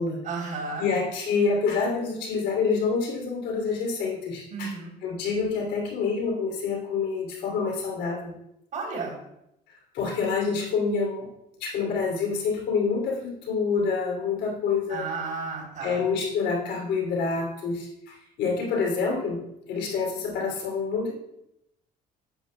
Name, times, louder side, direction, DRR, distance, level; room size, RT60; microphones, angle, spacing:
voice 1, 0.2-0.9 4.5-4.9 8.7-9.2 14.9-16.0, right 4 dB, 50° right, -2 dB, 3.3 m, -33 dB
voice 2, 0.8-4.7 5.0-8.2 9.9-11.3 11.6-15.1 15.8-19.4 19.7-21.1, left 5 dB, 85° left, -1 dB, 2.8 m, -27 dB
10.0 x 8.1 x 2.2 m, 0.81 s
cardioid pair, 110°, 17 cm